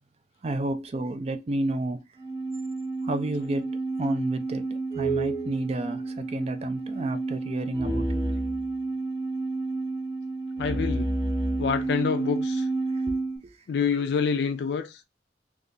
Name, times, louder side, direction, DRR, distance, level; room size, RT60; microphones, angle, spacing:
voice 1, 0.4-2.0 3.0-3.7 4.0-8.2 13.1-13.2 13.4-13.6, right 1 dB, 35° right, 0.4 m, -31 dB
sound 1, 2.2-13.4, right 2 dB, 15° right, 1.4 m, -30 dB
voice 2, 10.6-11.1 11.6-12.7 13.7-15.0, left 6 dB, 70° left, 0.3 m, -27 dB
2.6 x 2.4 x 3.6 m
head